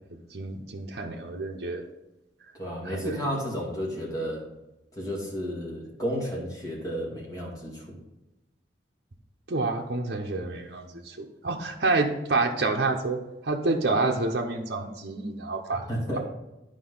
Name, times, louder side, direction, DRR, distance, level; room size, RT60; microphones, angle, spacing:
voice 1, 0.3-1.8 2.8-3.2 9.5-15.9, right 3 dB, 60° right, 1 dB, 0.7 m, -28 dB
voice 2, 2.6-4.4 5.0-8.0 15.9-16.2, equal, 20° left, -4 dB, 2.2 m, -32 dB
10.5 x 5.1 x 3.9 m, 0.97 s
head